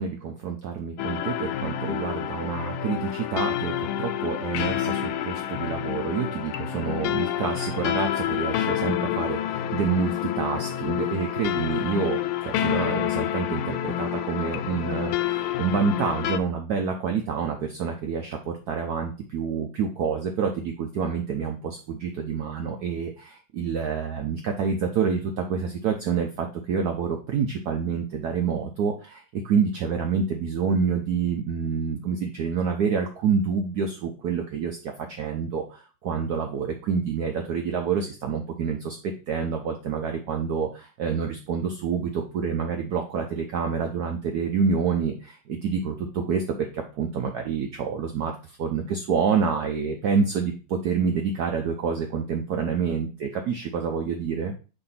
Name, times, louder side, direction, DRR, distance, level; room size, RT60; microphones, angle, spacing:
voice 1, 0.0-54.5, right 6 dB, 70° right, 4 dB, 0.9 m, -28 dB
sound 1, 1.0-16.4, left 11 dB, 80° left, 1.4 m, -28 dB
6.7 x 2.6 x 5.6 m, 0.35 s
omnidirectional pair, 2.3 m